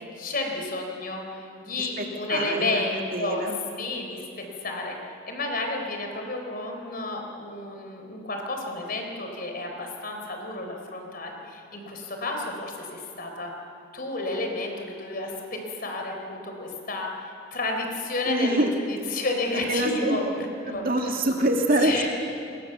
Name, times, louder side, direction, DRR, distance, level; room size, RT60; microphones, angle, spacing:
voice 1, 0.2-3.5 3.8-4.3 4.6-5.0 5.3-13.5 13.9-21.2 21.8-22.1, left 2 dB, 45° left, 2 dB, 4.3 m, -31 dB
voice 2, 1.8-3.6 18.3-18.7 19.5-20.2 20.7-22.1, right 1 dB, 45° right, 2 dB, 2.4 m, -26 dB
29.0 x 22.5 x 7.1 m, 2.6 s
head